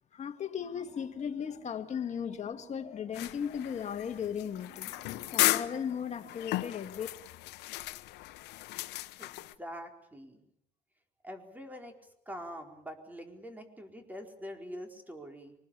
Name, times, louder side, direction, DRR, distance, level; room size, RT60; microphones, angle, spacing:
voice 1, 0.1-5.0 5.3-7.1, left 8 dB, 40° left, 2.2 m, -36 dB
sound 1, 0.6-6.4, right 7 dB, 35° right, 2.5 m, -58 dB
sound 2, 3.1-9.5, left 18 dB, 90° left, 1.0 m, -35 dB
voice 2, 9.2-10.4 11.2-12.0 12.3-15.5, equal, 10° right, 4.4 m, -44 dB
25.0 x 20.0 x 8.6 m
cardioid pair, 110°, 17 cm